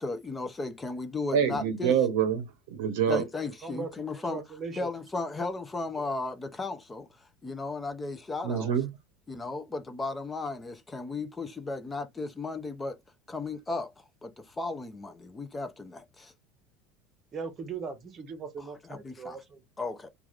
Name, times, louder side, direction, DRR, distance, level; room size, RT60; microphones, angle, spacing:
voice 1, 0.0-1.9 3.1-4.4 4.8-8.7 9.3-13.0 13.3-16.3 18.8-19.4 19.8-20.1, left 3 dB, 15° left, 0.5 m, -35 dB
voice 2, 1.3-3.2 8.4-8.9, right 8 dB, 80° right, 0.7 m, -26 dB
voice 3, 3.6-4.9 6.0-6.1 17.3-20.0, right 5 dB, 25° right, 0.8 m, -40 dB
3.2 x 2.4 x 2.4 m
supercardioid pair, 140°, 0 cm